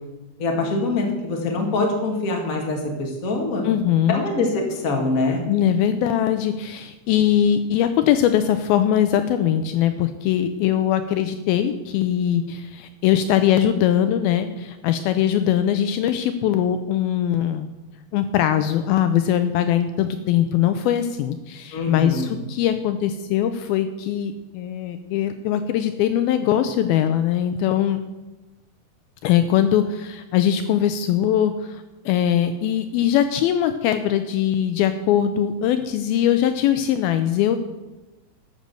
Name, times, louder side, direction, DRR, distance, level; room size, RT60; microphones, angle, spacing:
voice 1, 0.4-3.6 4.1-5.4 21.7-22.3, left 3 dB, 30° left, 1 dB, 1.7 m, -24 dB
voice 2, 3.6-4.2 5.5-17.7 18.1-28.0 29.2-37.6, left 10 dB, 80° left, 9 dB, 2.3 m, -21 dB
12.5 x 6.6 x 7.7 m, 1.1 s
omnidirectional pair, 4.6 m